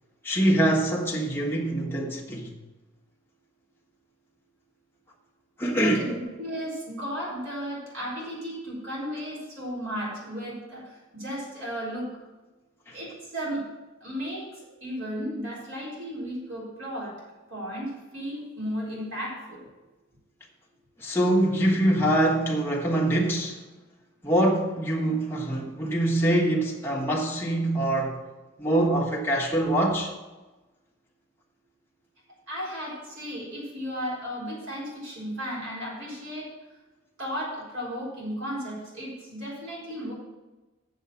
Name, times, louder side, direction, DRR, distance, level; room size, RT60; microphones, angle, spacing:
voice 1, 0.2-2.6 5.6-6.1 12.9-13.0 21.0-23.6 24.2-28.2 28.6-30.1, right 1 dB, 10° left, 1.3 m, -24 dB
voice 2, 5.6-10.8 11.1-12.1 12.9-13.6 14.0-14.5 14.8-17.1 17.5-19.6 32.5-36.5 37.2-40.1, equal, 75° right, 4.0 m, -34 dB
7.4 x 7.3 x 6.9 m
head